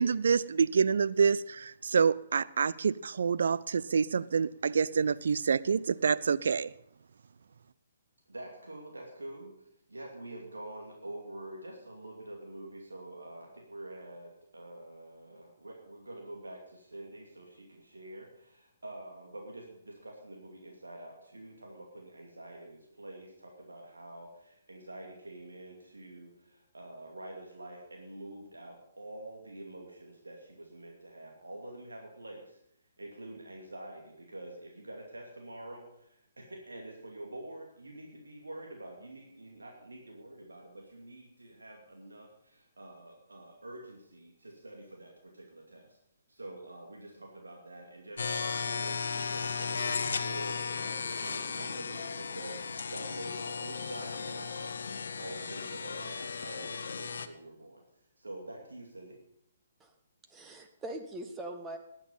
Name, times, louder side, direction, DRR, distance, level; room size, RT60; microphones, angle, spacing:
voice 1, 0.0-6.7, right 6 dB, 55° right, 18 dB, 0.5 m, -27 dB
voice 2, 8.3-9.5 9.9-32.6 33.0-46.0 46.3-57.8 58.2-59.2, right 1 dB, 70° right, 0 dB, 2.5 m, -46 dB
sound 1, 48.2-57.3, left 5 dB, 60° left, 0.9 m, -35 dB
voice 3, 60.3-61.8, right 1 dB, 10° right, 5 dB, 1.4 m, -41 dB
19.5 x 9.0 x 5.5 m, 0.76 s
figure-of-eight pair, 130°, 0 cm